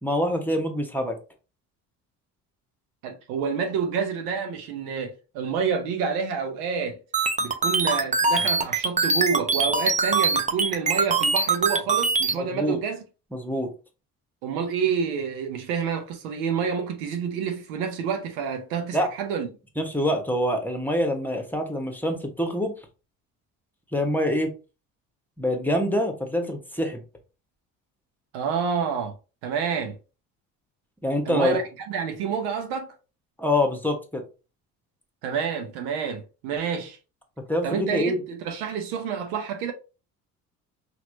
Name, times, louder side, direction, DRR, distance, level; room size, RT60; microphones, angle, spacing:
voice 1, 0.0-1.2 12.3-12.8 13.3-13.7 18.9-19.1 19.8-22.7 23.9-24.5 25.4-27.0 31.0-31.6 33.4-34.2 37.5-38.2, left 1 dB, 5° left, 1.2 m, -25 dB
voice 2, 3.0-7.0 7.4-13.0 14.4-19.5 28.3-29.1 29.4-29.9 31.3-32.9 35.2-37.0 37.6-39.7, right 6 dB, 65° right, 0.9 m, -28 dB
sound 1, 7.1-12.3, right 4 dB, 15° right, 0.7 m, -22 dB
5.8 x 2.7 x 2.6 m
figure-of-eight pair, 50°, 46 cm